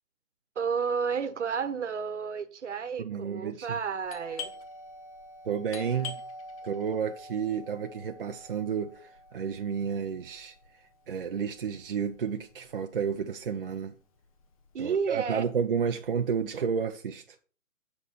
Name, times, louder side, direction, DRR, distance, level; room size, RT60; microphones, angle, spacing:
voice 1, 0.5-4.5 14.7-15.5, right 6 dB, 60° right, 1.2 m, -31 dB
voice 2, 3.0-3.8 5.4-6.2 6.6-13.9 14.8-17.4, right 7 dB, 45° right, 0.6 m, -31 dB
Doorbell, 4.0-13.4 13.7-13.8 14.4-14.8 15.1-16.5, left 3 dB, 25° left, 0.9 m, -45 dB
8.1 x 5.7 x 4.2 m
figure-of-eight pair, 150°, 41 cm